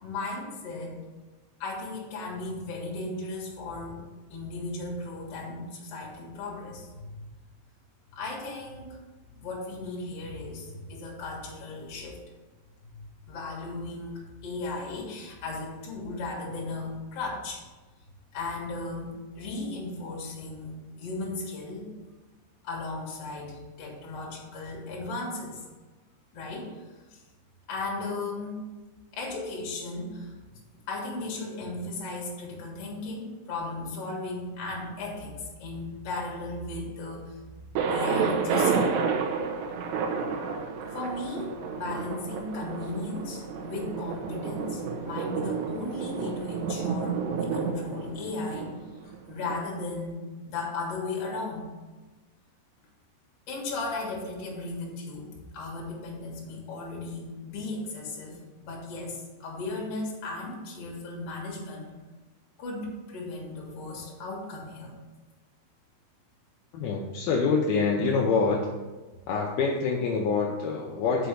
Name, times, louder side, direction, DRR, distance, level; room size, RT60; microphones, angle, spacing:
voice 1, 0.0-1.0 1.6-4.0 4.3-7.3 8.1-9.0 9.3-12.2 12.9-17.6 18.3-21.9 22.6-25.6 26.3-27.2 27.7-28.6 29.1-30.3 30.9-37.6 37.9-38.9 40.9-48.7 49.0-51.6 53.5-61.9 62.6-65.0, left 3 dB, 45° left, -2 dB, 2.2 m, -36 dB
Thunder, 37.8-49.6, right 5 dB, 80° right, 2.9 m, -30 dB
voice 2, 66.7-68.6 69.3-71.3, left 4 dB, 85° left, -1 dB, 2.2 m, -26 dB
6.1 x 5.8 x 6.4 m, 1.2 s
omnidirectional pair, 5.1 m